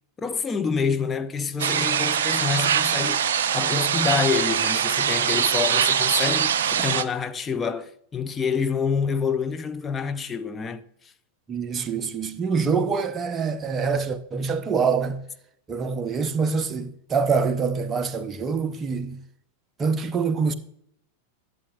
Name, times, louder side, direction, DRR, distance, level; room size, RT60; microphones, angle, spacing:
voice 1, 0.2-10.8, left 5 dB, 20° left, 0.5 m, -27 dB
sound 1, 1.6-7.0, right 8 dB, 60° right, 0.4 m, -23 dB
voice 2, 11.5-15.2 15.7-19.2 19.8-20.5, right 5 dB, 20° right, 0.7 m, -25 dB
11.5 x 7.8 x 2.3 m
figure-of-eight pair, 90°, 0 cm